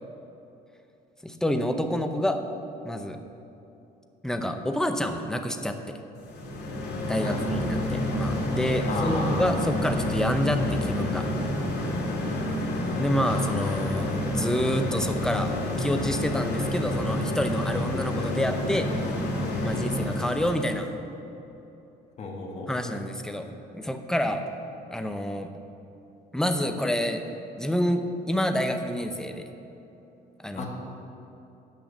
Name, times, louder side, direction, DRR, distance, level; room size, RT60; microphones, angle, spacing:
voice 1, 1.2-2.4 2.8-3.2 4.2-6.0 7.0-11.3 13.0-18.9 19.6-20.9 22.7-24.4 24.9-25.5 26.3-27.2 27.6-29.5 30.4-30.7, equal, 5° left, 6 dB, 0.7 m, -28 dB
sound 1, 6.2-20.8, left 1 dB, 80° left, 2.7 m, -29 dB
voice 2, 8.9-9.5 12.1-12.4 19.7-19.9 22.2-22.7 30.6-30.7, left 3 dB, 40° left, -1 dB, 2.0 m, -34 dB
9.0 x 6.3 x 7.2 m, 2.9 s
cardioid pair, 110°, 17 cm